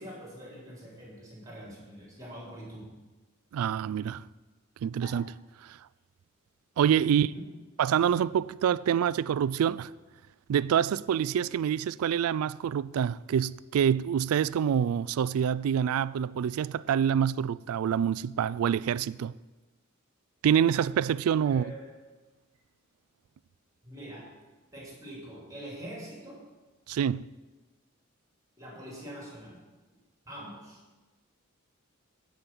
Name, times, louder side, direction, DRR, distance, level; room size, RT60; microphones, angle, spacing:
voice 1, 0.0-2.9 5.0-5.2 7.1-7.5 21.4-21.9 23.8-24.3 24.7-26.4 28.6-29.6 30.2-30.8, right 1 dB, 15° right, 2.9 m, -44 dB
voice 2, 3.5-4.2 4.8-5.2 6.8-7.3 7.8-9.9 10.5-19.3 20.4-21.7 26.9-27.3, right 8 dB, 80° right, 0.3 m, -26 dB
15.5 x 5.2 x 6.0 m
head